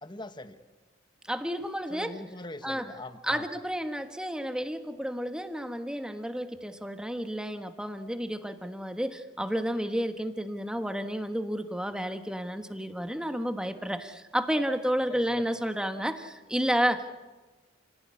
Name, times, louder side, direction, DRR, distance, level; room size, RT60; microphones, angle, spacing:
voice 1, 0.0-0.6 1.9-3.5 15.1-15.5, left 2 dB, 25° left, 10 dB, 1.2 m, -42 dB
voice 2, 1.3-2.1 2.6-2.9 3.2-17.1, equal, 5° right, 7 dB, 1.4 m, -31 dB
29.5 x 17.0 x 9.7 m, 1.2 s
head